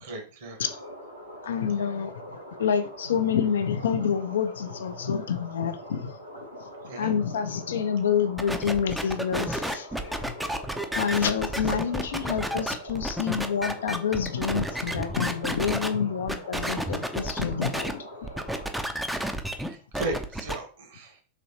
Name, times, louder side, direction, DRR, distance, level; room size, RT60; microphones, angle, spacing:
voice 1, 0.0-0.6 6.9-7.1 18.9-19.2 19.7-21.2, right 2 dB, 55° right, 1.1 m, -36 dB
sound 1, 0.6-18.7, equal, 90° right, 1.0 m, -43 dB
voice 2, 1.4-2.1 2.6-6.2 7.0-10.3 10.9-18.1, left 7 dB, 65° left, 0.4 m, -28 dB
sound 2, 8.4-15.9 16.3-17.9 18.2-20.5, right 1 dB, 5° right, 0.4 m, -31 dB
4.0 x 3.0 x 2.8 m
figure-of-eight pair, 90°, 0 cm